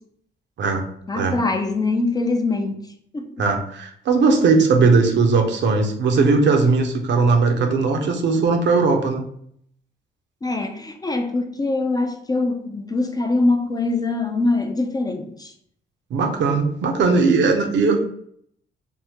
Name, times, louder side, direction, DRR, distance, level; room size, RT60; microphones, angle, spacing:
voice 1, 1.1-2.9 3.1-3.4 10.4-15.5, left 2 dB, 20° left, 0.4 m, -23 dB
voice 2, 3.4-9.3 16.1-18.0, right 4 dB, 65° right, 0.6 m, -18 dB
3.5 x 2.1 x 2.9 m
cardioid pair, 90°, 20 cm